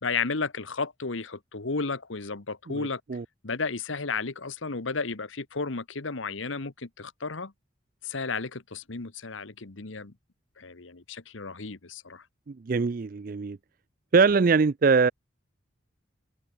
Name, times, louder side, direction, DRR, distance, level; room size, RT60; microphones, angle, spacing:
voice 1, 0.0-3.0 3.4-7.5 8.0-10.1 10.6-12.3, left 4 dB, 75° left, 1.3 m, -33 dB
voice 2, 12.5-13.6 14.1-15.1, right 4 dB, 45° right, 0.4 m, -22 dB
head